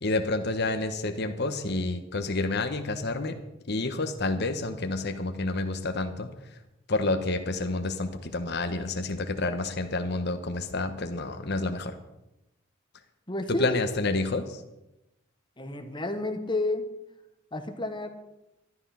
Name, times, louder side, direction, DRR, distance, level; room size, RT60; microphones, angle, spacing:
voice 1, 0.0-3.4 3.7-6.3 6.9-12.0 13.5-14.6, left 2 dB, 55° left, 7 dB, 1.2 m, -29 dB
voice 2, 13.3-13.8 15.6-16.8 17.5-18.1, left 2 dB, 25° left, 7 dB, 1.2 m, -30 dB
12.5 x 12.0 x 5.7 m, 0.91 s
head